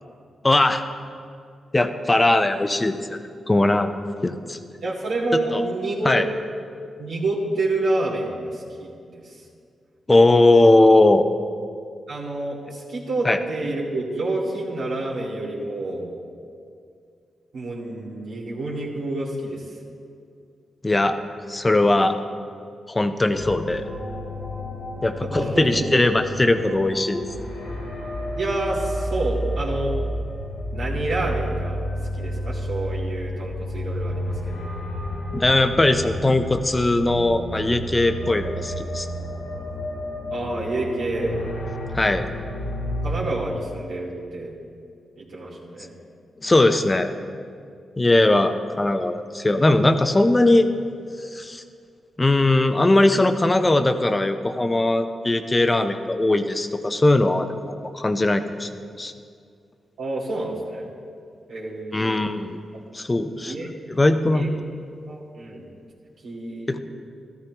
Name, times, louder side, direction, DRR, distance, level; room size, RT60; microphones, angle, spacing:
voice 1, 0.4-0.8 1.7-3.2 3.5-3.9 4.2-4.6 5.5-5.6 6.0-6.2 10.1-11.3 13.2-13.4 20.8-21.2 21.5-22.2 22.9-23.9 25.0-27.2 35.3-39.1 41.9-42.3 46.4-47.1 48.0-50.7 51.3-51.6 52.2-57.5 57.9-58.7 59.0-59.1 61.9-62.5 62.9-63.5 63.9-64.5 66.7-66.8, left 2 dB, 25° left, 8 dB, 0.8 m, -19 dB
voice 2, 4.8-6.2 7.0-9.4 12.1-16.1 17.5-19.6 25.2-26.0 28.4-29.9 30.7-31.8 32.2-34.6 40.3-41.4 43.0-44.5 45.2-45.9 60.0-60.9 61.5-62.3 63.5-63.7 64.3-64.5 65.1-65.6 66.2-66.8, right 2 dB, 80° right, -7 dB, 2.4 m, -28 dB
sound 1, 23.3-43.2, equal, 90° left, 3.3 m, -31 dB
14.0 x 13.0 x 3.0 m, 2.3 s
supercardioid pair, 50°, 0 cm